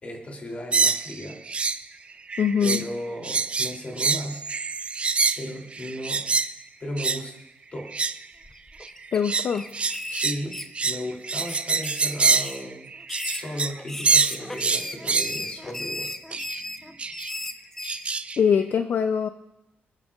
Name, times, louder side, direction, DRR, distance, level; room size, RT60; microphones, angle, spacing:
voice 1, 0.0-1.4 2.6-4.4 5.4-6.2 6.8-7.3 7.7-7.9 10.1-10.6 10.8-12.9 13.2-16.1, left 1 dB, 35° left, 1 dB, 2.9 m, -35 dB
sound 1, 0.7-1.8 2.1-2.9 3.2-6.5 7.0-7.2 7.8-8.3 8.8-13.8 14.0-15.4 16.3-16.6 17.0-17.3 17.8-18.4, right 4 dB, 30° right, 0.4 m, -25 dB
voice 2, 2.4-2.8 9.1-9.6 18.4-19.3, left 7 dB, 55° left, 9 dB, 0.4 m, -22 dB
sound 2, 8.4-9.2 9.5-11.1 11.4-12.6 13.0-18.1, left 1 dB, 10° left, 0.7 m, -35 dB
27.5 x 9.8 x 2.4 m, 0.89 s
cardioid pair, 120°, 4 cm